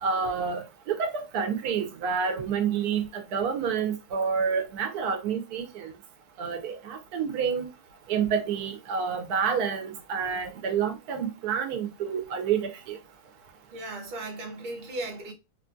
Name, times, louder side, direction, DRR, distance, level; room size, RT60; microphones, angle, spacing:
voice 1, 0.0-5.9 6.4-7.7 8.1-13.0, right 6 dB, 90° right, 1.2 m, -29 dB
voice 2, 13.7-15.3, right 2 dB, 40° right, 0.8 m, -36 dB
3.4 x 2.3 x 2.5 m
omnidirectional pair, 1.6 m